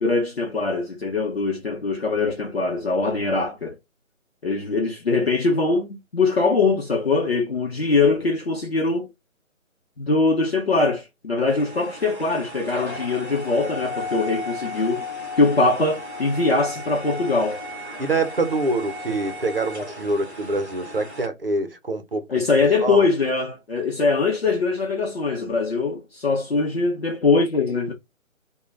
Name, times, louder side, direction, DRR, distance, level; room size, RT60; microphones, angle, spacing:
voice 1, 0.0-3.7 4.4-9.1 10.0-15.0 15.4-17.6 22.3-27.9, left 3 dB, 50° left, 0.9 m, -22 dB
sound 1, 11.5-21.3, left 2 dB, ahead, 1.1 m, -35 dB
voice 2, 18.0-22.2 22.8-23.1, right 2 dB, 45° right, 0.8 m, -25 dB
4.8 x 2.3 x 2.5 m
figure-of-eight pair, 170°, 40 cm